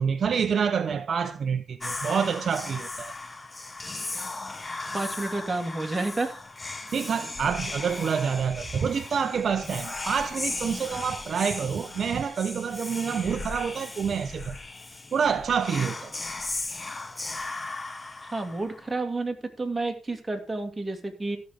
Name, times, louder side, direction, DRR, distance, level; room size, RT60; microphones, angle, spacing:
voice 1, 0.0-3.1 6.9-14.6 15.1-16.1, right 6 dB, 50° right, 0.7 m, -27 dB
Whispering, 1.8-18.9, left 3 dB, 20° left, 0.8 m, -37 dB
voice 2, 4.9-6.4 18.2-21.4, right 2 dB, 15° right, 2.2 m, -30 dB
14.0 x 6.4 x 5.0 m
cardioid pair, 110°, 0 cm